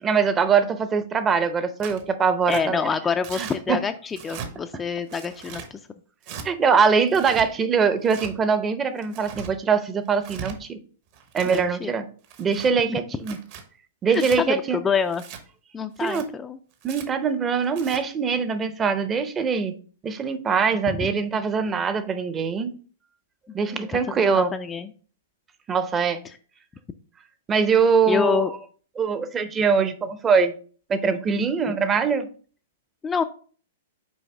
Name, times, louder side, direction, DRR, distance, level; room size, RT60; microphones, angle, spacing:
voice 1, 0.0-2.8 3.4-3.8 6.4-10.8 11.3-12.1 12.4-13.4 14.0-14.8 16.0-16.3 16.8-19.7 20.0-22.7 23.5-24.5 25.7-26.2 27.5-28.5 29.0-30.5 30.9-32.3, right 5 dB, 20° right, 11 dB, 0.7 m, -22 dB
Tearing, 1.8-2.0 2.5-2.6 3.2-3.6 4.1-4.5 5.1-5.7 6.2-6.5 7.1-7.5 8.0-8.3 9.0-9.5 10.1-10.6 11.1-11.7 12.2-12.7 13.2-13.6 14.1-14.4 15.1-15.4 16.0-16.2 16.8-17.1 17.6-18.0, right 6 dB, 50° right, 1.1 m, -38 dB
voice 2, 2.5-5.8 11.5-11.9 12.9-13.0 14.1-15.2 15.7-16.6 20.9-21.1 23.7-24.9 26.2-26.4 28.1-28.5 31.6-31.7 33.0-33.2, left 6 dB, 15° left, 8 dB, 0.4 m, -27 dB
6.3 x 4.6 x 3.4 m, 0.42 s
hypercardioid pair, 110°, 0 cm